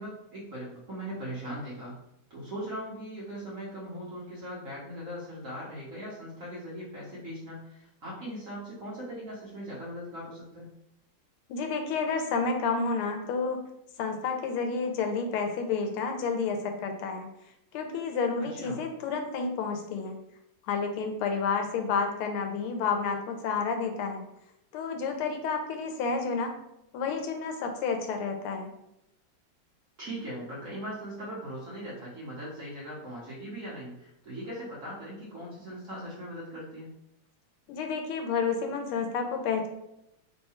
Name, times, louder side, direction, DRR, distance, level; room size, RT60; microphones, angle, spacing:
voice 1, 0.0-2.0 2.3-10.7 18.5-18.8 30.0-36.9, equal, 45° right, -6 dB, 1.2 m, -39 dB
voice 2, 11.5-13.6 14.0-17.3 17.7-20.2 20.7-24.2 24.7-26.5 26.9-28.7 37.7-39.7, left 5 dB, 80° left, 5 dB, 1.5 m, -30 dB
3.7 x 2.3 x 4.2 m, 0.82 s
omnidirectional pair, 2.4 m